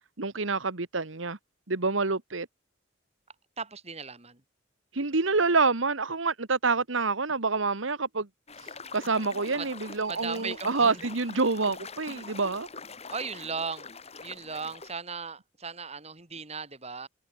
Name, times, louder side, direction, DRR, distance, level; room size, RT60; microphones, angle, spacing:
voice 1, 0.2-1.4 1.7-2.5 4.9-8.3 8.9-12.7, right 4 dB, 80° right, 1.5 m, -27 dB
voice 2, 3.6-4.4 9.6-9.7 10.1-11.1 13.1-17.1, right 5 dB, 35° right, 3.8 m, -37 dB
sound 1, 8.5-14.9, left 4 dB, 35° left, 3.8 m, -44 dB
head